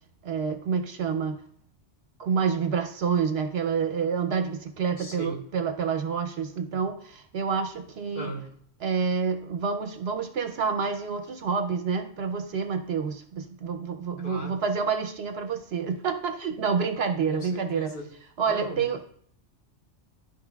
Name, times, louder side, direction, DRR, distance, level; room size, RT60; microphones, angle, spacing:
voice 1, 0.2-1.4 2.2-8.3 8.8-17.9 18.4-19.0, right 6 dB, 65° right, 6 dB, 0.8 m, -28 dB
voice 2, 5.0-5.4 8.1-8.5 14.2-14.6 17.3-18.1 18.5-19.0, equal, 50° left, -1 dB, 1.3 m, -37 dB
12.5 x 4.8 x 2.3 m, 0.63 s
omnidirectional pair, 1.2 m